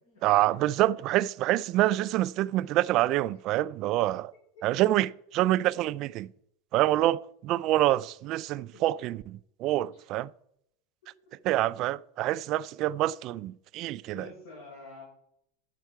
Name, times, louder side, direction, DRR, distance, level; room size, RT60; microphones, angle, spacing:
voice 1, 0.2-4.3 4.6-6.3 6.7-10.3 11.4-14.3, right 15 dB, 40° right, 0.3 m, -26 dB
voice 2, 4.5-4.9 10.0-10.1 14.1-15.0, left 2 dB, 85° left, 4.8 m, -48 dB
10.0 x 7.5 x 4.7 m
supercardioid pair, 155°, 0 cm